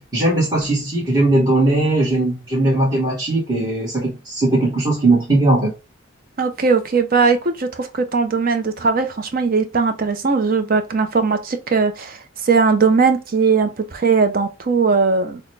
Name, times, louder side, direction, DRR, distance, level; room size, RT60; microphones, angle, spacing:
voice 1, 0.0-5.7, right 2 dB, 20° right, 1.4 m, -18 dB
voice 2, 6.4-12.2 12.5-15.4, right 4 dB, 45° right, 0.6 m, -19 dB
6.1 x 2.2 x 3.2 m
head